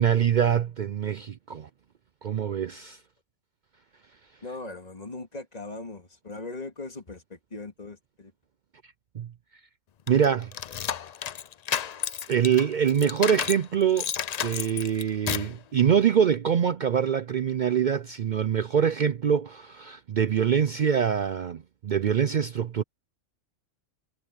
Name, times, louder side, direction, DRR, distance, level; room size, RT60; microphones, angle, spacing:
voice 1, 0.0-1.7 2.2-3.0 9.1-9.3 10.1-10.5 12.3-14.1 14.4-22.8, right 8 dB, 60° right, 0.5 m, -24 dB
voice 2, 4.4-8.3, left 2 dB, 30° left, 2.4 m, -39 dB
sound 1, 10.1-13.6 14.0-15.6, left 8 dB, 60° left, 0.4 m, -31 dB
omnidirectional pair, 1.3 m